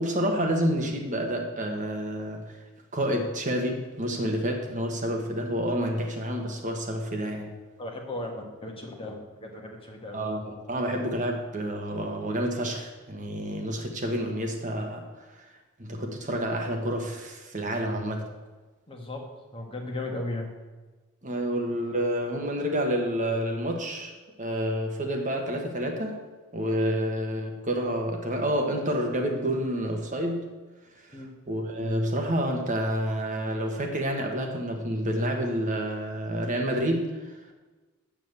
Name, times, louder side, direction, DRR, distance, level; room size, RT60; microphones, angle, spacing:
voice 1, 0.0-2.6 2.9-7.5 10.1-15.1 15.4-15.5 15.8-18.3 21.2-24.1 24.4-26.2 26.5-30.5 31.0-37.4, equal, 35° right, 3 dB, 1.3 m, -29 dB
voice 2, 7.8-10.2 18.9-19.2 19.5-20.5 31.1-31.3, left 2 dB, 25° left, 1 dB, 1.6 m, -36 dB
7.5 x 7.2 x 8.0 m, 1.2 s
head